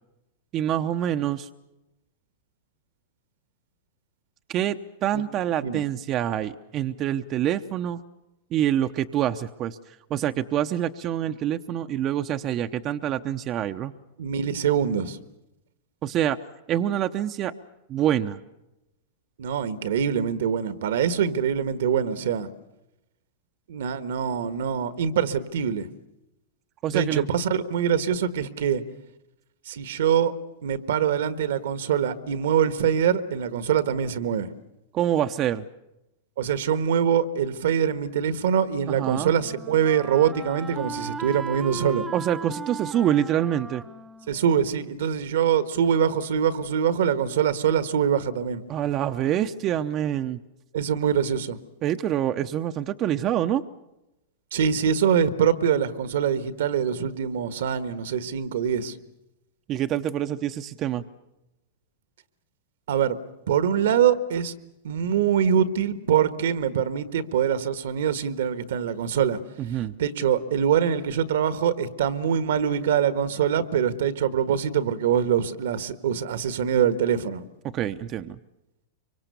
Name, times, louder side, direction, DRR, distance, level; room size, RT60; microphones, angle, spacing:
voice 1, 0.5-1.5 4.5-8.0 8.5-13.9 16.0-16.4 16.7-17.5 17.9-18.4 26.8-27.2 34.9-35.6 38.9-39.3 42.1-43.8 48.7-50.4 51.8-53.6 59.7-61.0 69.6-69.9 77.6-78.4, right 11 dB, 35° right, 7 dB, 0.8 m, -26 dB
voice 2, 14.2-15.2 19.4-22.5 23.7-25.9 26.9-28.8 29.7-30.3 30.6-34.5 36.4-42.0 44.3-48.6 50.7-51.6 54.5-58.9 62.9-63.2 63.5-64.5 64.8-69.4 70.0-77.4, right 8 dB, 75° right, 12 dB, 1.5 m, -24 dB
Wind instrument woodwind instrument, 38.5-45.4, right 4 dB, 15° right, 1.0 m, -38 dB
24.5 x 24.5 x 6.9 m, 0.93 s
hypercardioid pair, 115°, 0 cm